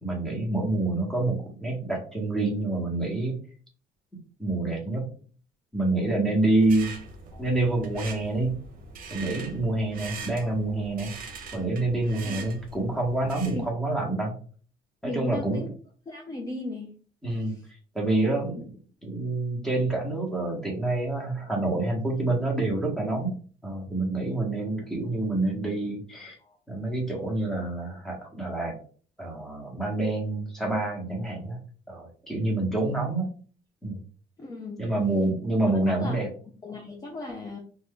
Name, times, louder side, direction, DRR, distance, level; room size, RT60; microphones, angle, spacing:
voice 1, 0.0-3.3 4.4-5.1 5.7-6.9 7.4-8.5 9.1-11.1 11.5-14.4 15.0-15.7 17.2-17.6 17.9-18.6 19.0-23.3 23.6-26.3 26.7-28.7 29.2-31.6 31.9-33.3 33.8-34.0 34.8-36.3, right 2 dB, ahead, -1 dB, 1.1 m, -27 dB
sound 1, 6.6-13.7, right 4 dB, 55° right, 0.7 m, -42 dB
voice 2, 15.0-15.7 16.1-16.9 17.4-17.7 18.6-18.7 26.4-26.6 32.4-33.0 34.4-34.8 35.9-36.3 36.6-37.6, left 2 dB, 20° left, 1 dB, 0.5 m, -37 dB
2.5 x 2.3 x 3.6 m, 0.42 s
cardioid pair, 110°, 17 cm